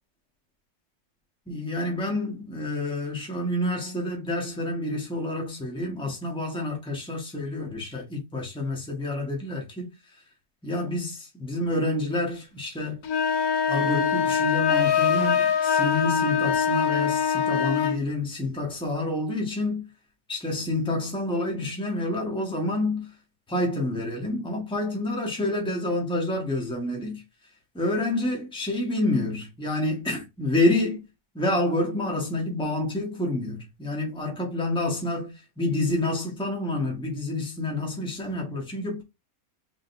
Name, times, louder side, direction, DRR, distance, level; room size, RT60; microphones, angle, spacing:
voice 1, 1.5-9.9 10.6-13.0 13.7-19.9 20.3-23.1 23.5-27.2 27.7-31.0 31.3-39.0, left 2 dB, 5° left, 1.5 m, -28 dB
sound 1, 13.0-18.0, left 7 dB, 85° left, 1.3 m, -23 dB
5.1 x 4.0 x 2.6 m
omnidirectional pair, 1.5 m